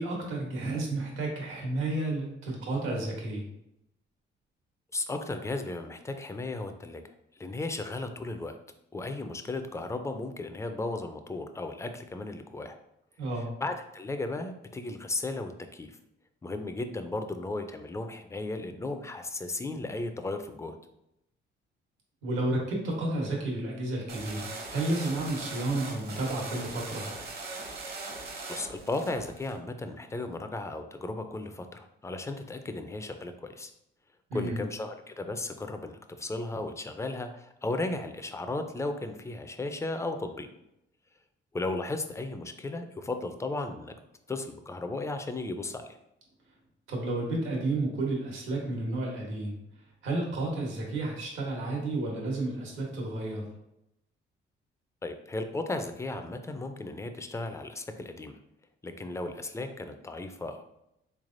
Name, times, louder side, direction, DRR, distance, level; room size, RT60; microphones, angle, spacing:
voice 1, 0.0-3.5 13.2-13.5 22.2-27.1 34.3-34.6 46.9-49.6 50.0-53.4, right 2 dB, 80° right, -1 dB, 1.2 m, -31 dB
voice 2, 4.9-8.6 8.9-12.8 13.6-16.0 16.4-20.8 28.5-33.7 34.3-40.5 41.5-43.9 44.3-46.0 55.0-58.4 58.8-60.7, left 2 dB, 15° left, 7 dB, 0.4 m, -35 dB
sound 1, 24.1-29.5, right 3 dB, 55° right, 0.8 m, -40 dB
3.6 x 3.2 x 2.5 m, 0.83 s
cardioid pair, 90°, 20 cm